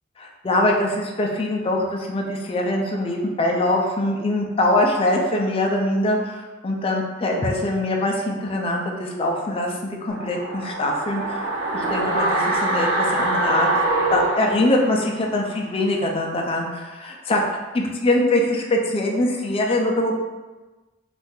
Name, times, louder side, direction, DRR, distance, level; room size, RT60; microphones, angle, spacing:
voice 1, 0.2-11.4 11.7-13.7 14.1-17.4 17.7-20.1, left 1 dB, 30° left, 0 dB, 0.4 m, -23 dB
sound 1, 10.1-15.2 15.5-15.6, right 2 dB, 80° right, 0.6 m, -24 dB
2.7 x 2.5 x 3.6 m, 1.2 s
head